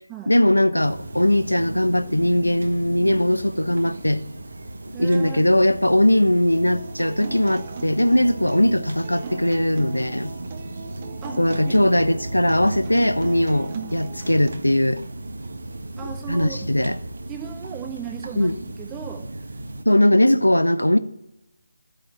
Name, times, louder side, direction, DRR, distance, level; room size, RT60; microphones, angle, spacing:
voice 1, 0.3-4.2 5.0-10.3 10.8-10.9 11.4-15.0 16.3-17.0 18.4-18.6 19.9-21.0, left 1 dB, 85° left, 0.8 m, -19 dB
sound 1, 0.8-19.8, right 2 dB, 60° right, 1.4 m, -36 dB
voice 2, 4.9-5.5 11.2-11.8 16.0-16.7 17.3-18.5 18.8-19.2 19.9-20.1, right 9 dB, 15° right, 1.4 m, -36 dB
Acoustic guitar, 6.5-14.5, right 5 dB, 30° right, 1.2 m, -39 dB
13.0 x 8.9 x 7.4 m
figure-of-eight pair, 155°, 0 cm